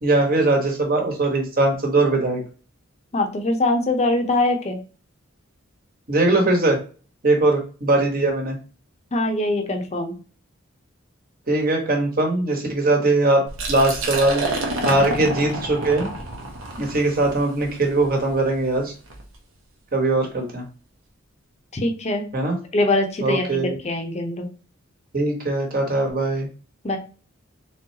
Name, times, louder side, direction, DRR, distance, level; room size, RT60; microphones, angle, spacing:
voice 1, 0.0-2.4 6.1-6.8 7.2-8.6 11.5-13.4 13.7-14.4 14.8-16.1 16.8-18.9 19.9-20.6 22.3-22.5 23.2-23.8 25.1-26.5, right 2 dB, 45° right, 1 dB, 1.3 m, -20 dB
voice 2, 3.1-4.8 9.1-10.1 21.7-22.3 22.7-24.5 26.8-27.0, left 2 dB, 35° left, 4 dB, 0.7 m, -23 dB
Liquid, 13.5-19.2, right 2 dB, 85° right, 1.0 m, -29 dB
3.9 x 3.3 x 2.8 m, 0.38 s
head